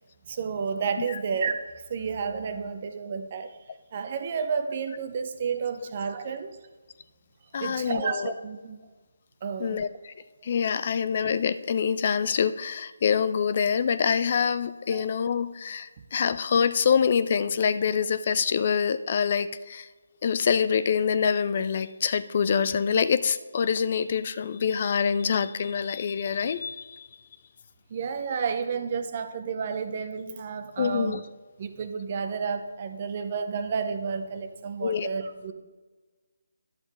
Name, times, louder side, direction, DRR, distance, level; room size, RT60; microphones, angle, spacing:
voice 1, 0.3-3.6 3.9-6.6 7.6-8.8 9.4-9.8 14.9-15.0 16.0-16.1 27.9-31.2 31.6-35.5, right 6 dB, 40° right, 9 dB, 0.8 m, -31 dB
voice 2, 7.5-8.3 9.6-10.1 10.4-19.9 20.2-27.1 30.8-31.2 34.8-35.1, left 7 dB, 40° left, 14 dB, 0.4 m, -25 dB
11.5 x 7.3 x 3.5 m, 1.3 s
figure-of-eight pair, 150°, 0 cm